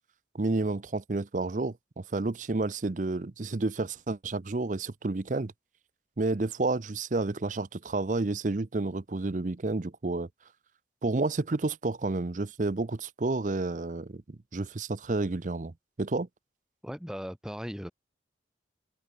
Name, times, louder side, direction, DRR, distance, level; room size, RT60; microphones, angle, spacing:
voice 1, 0.3-5.5 6.2-10.3 11.0-15.7 16.0-16.3, right 2 dB, 45° right, 0.6 m, -30 dB
voice 2, 16.8-17.9, equal, 5° right, 2.3 m, -37 dB
open air
head